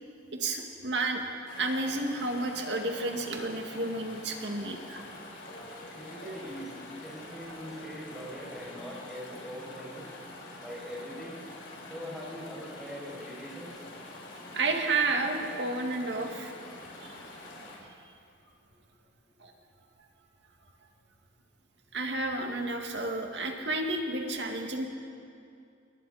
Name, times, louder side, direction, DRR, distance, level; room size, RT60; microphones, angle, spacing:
voice 1, 0.3-1.2 1.6-5.0 14.5-16.5 17.0-17.2 19.4-19.5 21.9-24.9, right 2 dB, 65° right, 2 dB, 2.2 m, -31 dB
Chatter / Stream, 1.5-17.8, left 2 dB, 85° left, 5.1 m, -46 dB
voice 2, 5.9-10.0 10.6-11.4 11.9-13.7 18.3-18.4, equal, ahead, -6 dB, 7.0 m, -42 dB
28.5 x 21.5 x 4.3 m, 2.5 s
head